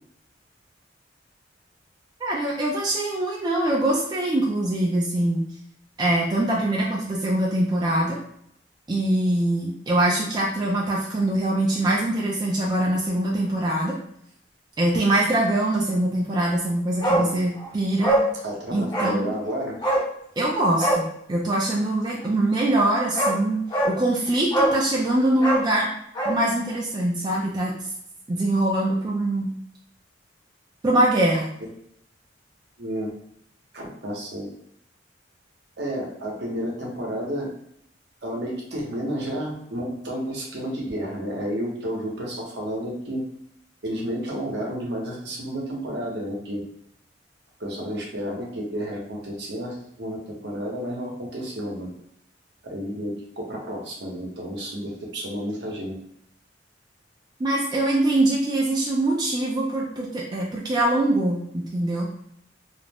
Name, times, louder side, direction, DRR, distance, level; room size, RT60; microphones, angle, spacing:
voice 1, 2.2-5.5 6.0-8.2 8.9-14.0 14.8-18.2 18.7-19.3 20.4-23.6 23.9-25.9 26.3-27.9 28.3-29.5 30.8-31.5 57.4-62.1, right 1 dB, 25° right, -3 dB, 0.3 m, -23 dB
Bark, 17.0-17.3 17.6-17.7 18.0-18.3 18.9-19.2 19.8-20.1 20.7-21.0 22.6-22.7 23.1-23.4 23.7-24.0 24.5-24.8 25.3-26.4 26.7-26.8, right 1 dB, 25° left, 0.6 m, -22 dB
voice 2, 18.4-19.8 32.8-33.1 33.7-34.4 35.8-37.5 38.2-43.2 43.8-46.6 47.6-50.2 50.4-51.9 52.6-55.9, equal, 65° right, -1 dB, 0.8 m, -31 dB
2.4 x 2.0 x 3.3 m, 0.71 s
head